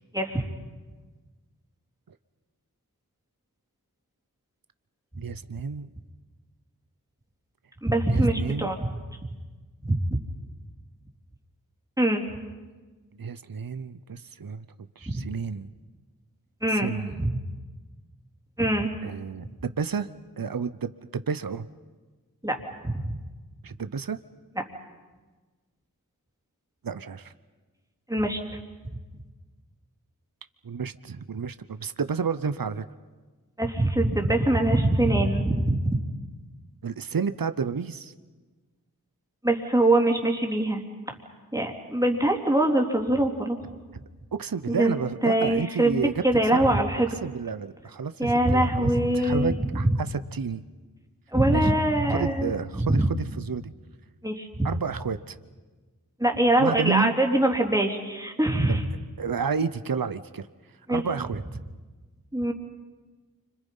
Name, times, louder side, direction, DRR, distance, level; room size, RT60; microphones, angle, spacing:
voice 1, 0.1-0.5 7.8-8.9 9.8-10.2 12.0-12.2 15.1-15.2 16.6-16.9 18.6-18.9 22.4-22.6 22.8-23.2 28.1-28.4 33.6-35.9 39.4-40.8 41.5-43.6 44.7-47.2 48.2-49.8 51.3-53.1 54.2-54.7 56.2-58.8 60.9-61.0 62.3-62.5, right 1 dB, 10° right, 1 dB, 3.4 m, -23 dB
voice 2, 5.2-5.9 8.1-8.7 13.2-14.6 15.0-15.7 16.7-17.1 19.0-20.1 20.4-21.7 23.6-24.2 26.8-27.3 30.6-32.8 36.8-38.1 44.4-46.2 46.5-46.7 47.2-50.6 51.5-51.7 52.1-53.6 54.6-55.4 56.6-57.1 59.2-60.5 60.9-61.4, right 6 dB, 70° right, 12 dB, 0.8 m, -31 dB
30.0 x 26.0 x 5.5 m, 1.3 s
wide cardioid pair, 45°, 36 cm